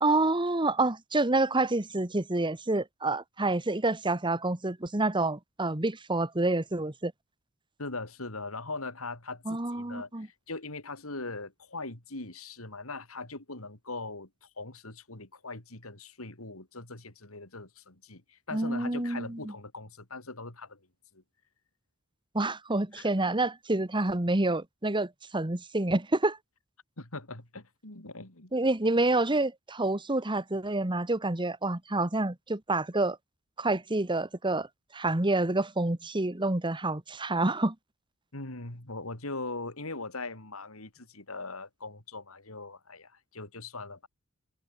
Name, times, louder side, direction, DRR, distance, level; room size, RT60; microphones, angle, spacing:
voice 1, 0.0-7.1 9.5-10.3 18.5-19.4 22.3-26.4 28.5-33.2 33.6-34.7 34.9-37.7, right 2 dB, 25° right, 1.4 m, -28 dB
voice 2, 7.8-20.8 21.1-21.2 22.9-23.1 27.0-28.5 38.3-44.1, left 3 dB, 80° left, 4.2 m, -41 dB
head